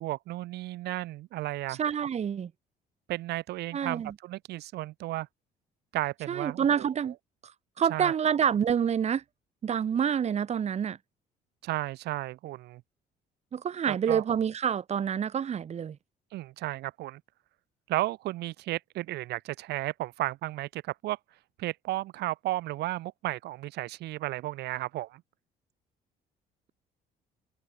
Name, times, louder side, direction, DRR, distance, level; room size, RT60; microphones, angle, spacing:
voice 1, 0.0-1.8 3.1-5.3 5.9-6.8 7.9-8.1 11.6-12.8 13.9-14.2 16.3-17.2 17.9-21.2 21.6-25.2, right 17 dB, 75° right, 1.3 m, -33 dB
voice 2, 1.7-2.5 3.7-4.1 6.3-7.1 7.4-7.5 7.8-9.2 9.6-11.0 13.5-16.0, right 8 dB, 40° right, 1.6 m, -27 dB
cardioid pair, 110°, 17 cm